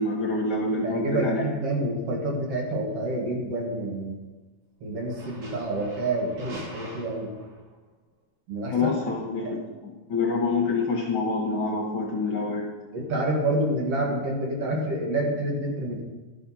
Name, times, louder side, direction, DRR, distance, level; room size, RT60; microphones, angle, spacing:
voice 1, 0.0-1.4 8.7-12.7, left 3 dB, 50° left, -1 dB, 2.0 m, -27 dB
voice 2, 0.8-4.2 4.8-7.3 8.5-8.7 9.4-9.5 12.9-16.0, right 1 dB, 55° right, 0 dB, 2.4 m, -28 dB
sound 1, 2.4-2.7 5.0-7.8, right 2 dB, 85° right, 4.7 m, -45 dB
12.0 x 7.0 x 5.6 m, 1.2 s
omnidirectional pair, 3.4 m